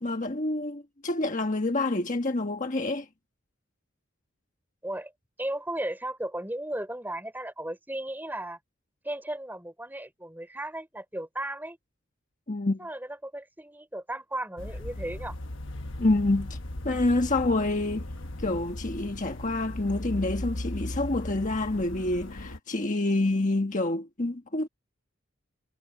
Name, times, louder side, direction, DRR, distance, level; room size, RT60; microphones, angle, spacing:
voice 1, 0.0-3.1 12.5-12.8 16.0-16.6 16.8-18.1 18.4-24.7, left 2 dB, 40° left, 1.4 m, -27 dB
voice 2, 5.4-8.6 9.0-11.8 12.8-15.4, right 1 dB, 10° right, 4.8 m, -35 dB
sound 1, 14.6-22.6, left 1 dB, 70° left, 1.3 m, -37 dB
head